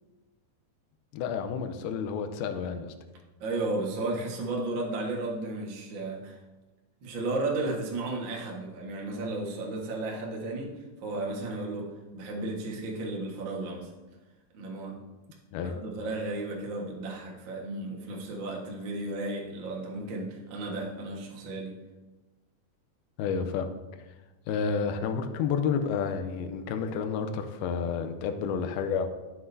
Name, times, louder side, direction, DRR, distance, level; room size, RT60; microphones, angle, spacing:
voice 1, 1.1-2.9 15.5-15.8 23.2-23.7 24.5-29.1, left 6 dB, 80° left, 7 dB, 2.4 m, -30 dB
voice 2, 3.4-6.4 7.0-13.9 14.5-15.0 15.6-21.8, right 2 dB, 80° right, -1 dB, 1.0 m, -34 dB
12.5 x 7.7 x 2.7 m, 1.1 s
omnidirectional pair, 4.7 m